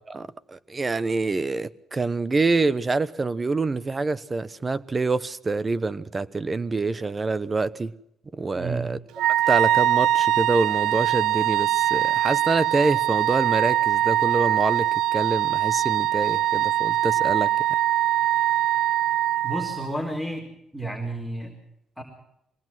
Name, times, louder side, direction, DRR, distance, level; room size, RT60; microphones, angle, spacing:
voice 1, 0.1-7.9 8.3-9.0 9.5-17.5, right 3 dB, 30° right, 1.0 m, -26 dB
voice 2, 8.5-8.9 19.4-20.5 20.7-21.5 22.0-22.1, right 1 dB, 5° right, 4.6 m, -31 dB
Wind instrument woodwind instrument, 9.2-19.9, right 13 dB, 85° right, 0.7 m, -22 dB
24.0 x 18.5 x 6.1 m
cardioid pair, 90°, 0 cm